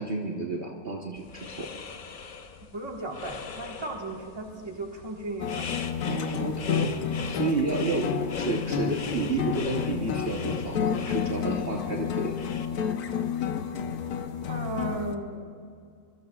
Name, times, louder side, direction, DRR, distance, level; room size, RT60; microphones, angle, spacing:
voice 1, 0.0-1.7 6.1-7.0 7.3-12.4, right 3 dB, 40° right, -1 dB, 1.2 m, -31 dB
sound 1, 1.2-12.7, left 5 dB, 45° left, 0.7 m, -41 dB
voice 2, 2.7-5.7 7.8-8.0 14.5-15.5, right 2 dB, 15° right, 0 dB, 1.6 m, -36 dB
sound 2, 5.4-15.1, left 7 dB, 75° left, 1.4 m, -30 dB
25.5 x 23.5 x 2.4 m, 2.3 s
omnidirectional pair, 1.6 m